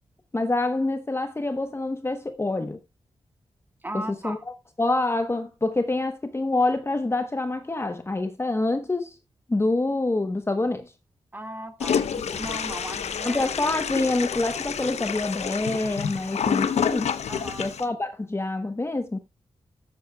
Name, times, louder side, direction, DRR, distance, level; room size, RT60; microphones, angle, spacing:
voice 1, 0.3-2.8 3.9-4.4 4.8-9.1 9.5-10.9 13.2-17.1 17.6-19.2, left 2 dB, 25° left, 1.0 m, -26 dB
voice 2, 3.8-4.4 11.3-13.5 16.6-16.7 17.3-17.7, right 1 dB, 20° right, 1.8 m, -37 dB
Toilet flush, 11.8-17.8, left 7 dB, 80° left, 0.8 m, -28 dB
13.5 x 9.3 x 2.3 m
cardioid pair, 85°, 11 cm